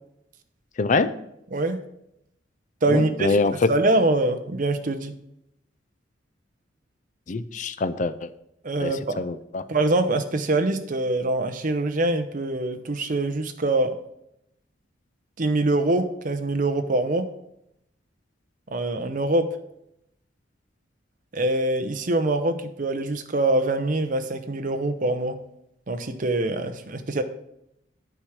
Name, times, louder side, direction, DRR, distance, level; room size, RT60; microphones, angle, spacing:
voice 1, 0.8-1.1 2.9-3.7 7.3-8.3 8.8-9.6, left 3 dB, 40° left, 13 dB, 0.5 m, -24 dB
voice 2, 1.5-1.8 2.8-3.4 3.7-5.2 8.6-9.2 9.7-14.0 15.4-17.3 18.7-19.6 21.3-25.4 25.9-27.2, right 2 dB, 45° right, 8 dB, 0.7 m, -24 dB
9.0 x 4.9 x 5.8 m, 0.80 s
head